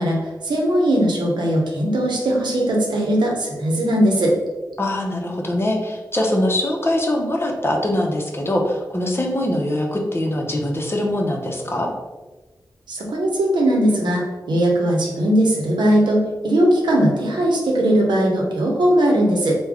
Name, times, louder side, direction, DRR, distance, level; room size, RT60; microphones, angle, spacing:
voice 1, 0.0-4.3 12.9-19.6, right 1 dB, 85° right, 0 dB, 0.7 m, -19 dB
voice 2, 4.8-11.9, left 1 dB, 30° left, 0 dB, 0.7 m, -22 dB
3.4 x 2.2 x 3.5 m, 1.2 s
cardioid pair, 50°, 8 cm